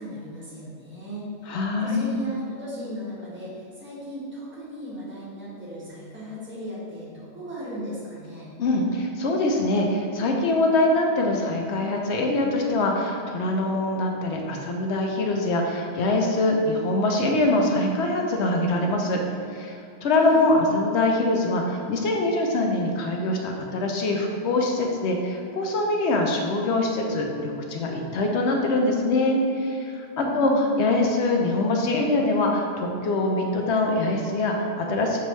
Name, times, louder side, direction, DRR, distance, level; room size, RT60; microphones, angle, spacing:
voice 1, 0.0-1.3 1.8-8.5 20.2-20.5 30.1-30.6, equal, 10° right, -9 dB, 1.2 m, -37 dB
voice 2, 1.5-2.2 8.6-19.2 19.5-35.2, left 2 dB, 75° left, 1 dB, 0.9 m, -23 dB
6.5 x 2.7 x 3.1 m, 2.5 s
omnidirectional pair, 1.2 m